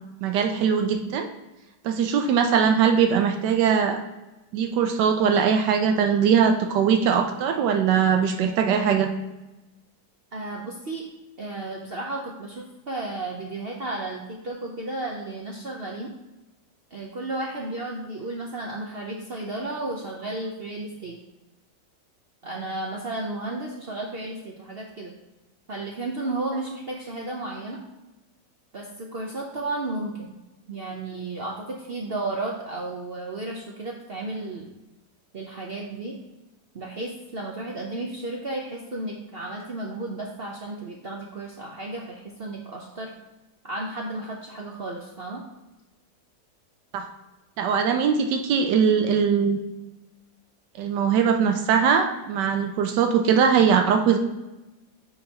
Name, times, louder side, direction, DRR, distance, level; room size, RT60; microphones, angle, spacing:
voice 1, 0.2-1.3 1.8-4.0 4.5-9.1 46.9-47.0 47.6-49.6 50.8-54.2, right 7 dB, 85° right, 5 dB, 1.3 m, -21 dB
voice 2, 10.3-11.0 11.4-16.1 16.9-21.2 22.4-25.2 25.7-27.8 28.7-30.4 30.7-34.7 35.3-36.2 36.7-43.1 43.6-45.4, right 2 dB, 55° right, -1 dB, 0.6 m, -33 dB
9.8 x 3.8 x 2.8 m, 1.0 s
omnidirectional pair, 1.8 m